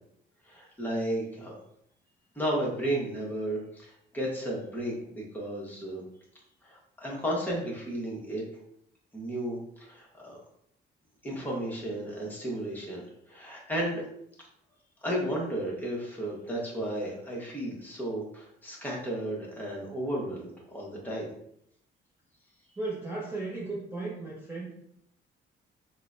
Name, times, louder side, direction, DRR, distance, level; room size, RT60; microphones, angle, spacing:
voice 1, 0.5-1.6 2.3-6.0 6.6-8.4 9.1-10.4 11.2-13.0 13.3-14.1 15.0-21.3, right 1 dB, 10° left, -3 dB, 1.1 m, -33 dB
voice 2, 22.8-24.7, right 3 dB, 10° right, -5 dB, 0.7 m, -35 dB
3.8 x 2.1 x 2.5 m, 0.72 s
cardioid pair, 90°, 20 cm